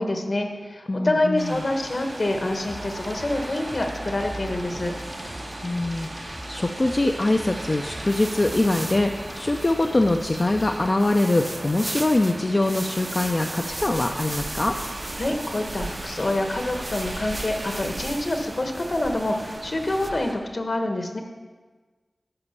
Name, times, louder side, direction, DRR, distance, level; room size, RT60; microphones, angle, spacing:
voice 1, 0.0-4.9 15.2-21.2, left 1 dB, 60° left, 3 dB, 1.3 m, -26 dB
voice 2, 0.9-1.6 5.6-14.7, left 2 dB, 40° left, 3 dB, 0.5 m, -23 dB
sound 1, 1.4-20.3, right 1 dB, 85° right, 1.6 m, -37 dB
sound 2, 2.6-11.0, equal, 5° left, 0.7 m, -41 dB
sound 3, 7.1-20.1, right 2 dB, 35° right, 0.4 m, -38 dB
12.5 x 5.0 x 6.8 m, 1.4 s
wide cardioid pair, 70°, 0 cm